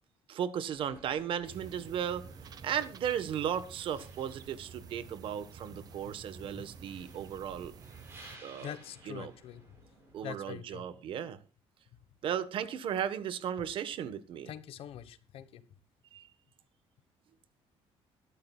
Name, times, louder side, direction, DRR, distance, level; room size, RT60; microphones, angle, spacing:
voice 1, 0.3-2.3 2.6-7.7 8.4-8.7 9.1-9.3 10.1-11.4 12.2-14.5 16.1-16.3, right 9 dB, 55° right, 14 dB, 1.2 m, -35 dB
sound 1, 0.7-10.2, right 1 dB, 20° right, 6.8 m, -57 dB
sound 2, 1.4-8.4, right 6 dB, 40° right, 0.9 m, -51 dB
voice 2, 8.6-9.6 10.2-10.8 14.5-15.6, left 10 dB, 65° left, 13 dB, 1.2 m, -44 dB
22.0 x 11.5 x 2.3 m, 0.31 s
cardioid pair, 170°, 10 cm